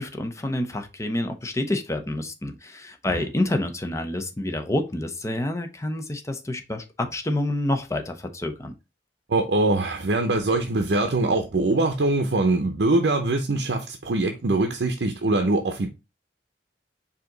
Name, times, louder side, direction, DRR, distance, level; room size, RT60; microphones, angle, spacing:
voice 1, 0.0-8.7, left 1 dB, 15° left, 0.7 m, -28 dB
voice 2, 9.3-15.9, right 2 dB, 70° right, 0.6 m, -23 dB
4.9 x 2.8 x 3.8 m
head